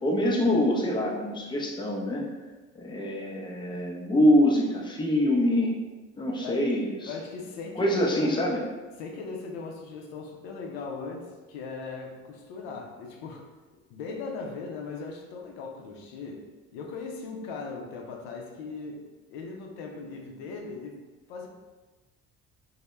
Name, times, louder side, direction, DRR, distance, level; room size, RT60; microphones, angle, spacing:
voice 1, 0.0-2.3 2.8-5.8 6.2-7.1 7.8-8.6, left 1 dB, 15° left, -2 dB, 0.5 m, -25 dB
voice 2, 7.1-8.6 9.0-13.5 13.9-16.4 16.7-21.0 21.3-21.5, left 4 dB, 85° left, 1 dB, 0.5 m, -38 dB
2.1 x 2.0 x 3.0 m, 1.2 s
supercardioid pair, 70°, 30 cm